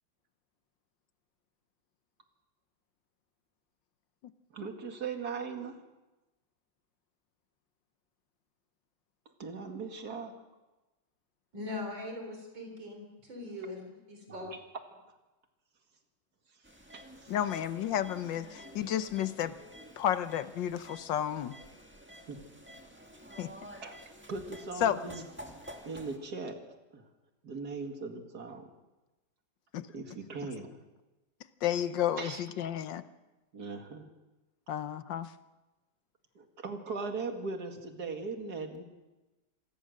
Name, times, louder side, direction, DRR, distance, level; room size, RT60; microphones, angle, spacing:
voice 1, 4.5-5.8 9.4-10.3 16.9-17.4 22.3-22.4 23.8-24.0 24.3-25.2 25.8-26.6 26.9-27.0 27.4-28.7 29.9-30.8 32.2-32.4 33.5-34.1 36.4-38.8, right 4 dB, 50° right, 2.6 m, -39 dB
voice 2, 11.5-14.5, left 2 dB, 70° right, 4.7 m, -41 dB
sound 1, 16.6-26.2, equal, 5° right, 1.6 m, -51 dB
voice 3, 17.3-19.5 20.0-21.5 23.4-23.5 24.8-25.0 29.7-29.9 31.6-33.0 34.7-35.3, left 10 dB, 70° left, 1.5 m, -31 dB
27.0 x 19.0 x 6.6 m
omnidirectional pair, 2.1 m